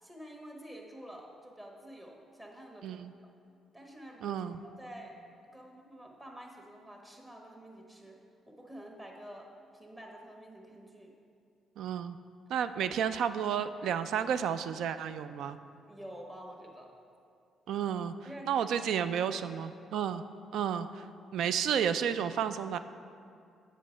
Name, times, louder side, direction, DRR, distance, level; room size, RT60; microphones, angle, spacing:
voice 1, 0.0-3.3 3.7-5.2 5.5-8.2 8.5-11.1 15.9-16.9 18.2-18.7 19.3-19.6, right 1 dB, 20° right, 0 dB, 1.3 m, -49 dB
voice 2, 4.2-4.5 11.8-12.2 12.5-15.6 17.7-18.1 18.5-20.2 20.5-21.1 21.3-22.8, right 8 dB, 80° right, 11 dB, 0.3 m, -31 dB
7.5 x 5.0 x 5.1 m, 2.4 s
cardioid pair, 90°, 0 cm